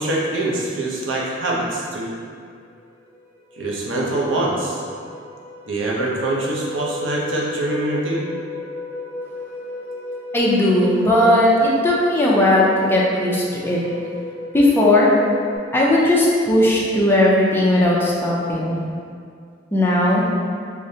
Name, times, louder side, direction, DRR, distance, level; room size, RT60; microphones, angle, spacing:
voice 1, 0.0-2.1 3.6-4.8 5.7-8.2, right 2 dB, 75° right, -3 dB, 0.7 m, -24 dB
sound 1, 2.7-2.8 3.1-15.6, left 2 dB, 25° right, 0.7 m, -35 dB
voice 2, 10.3-13.8 14.5-15.1 15.7-18.8 19.7-20.2, left 1 dB, 10° left, -5 dB, 0.5 m, -17 dB
4.8 x 2.1 x 2.7 m, 2.3 s
head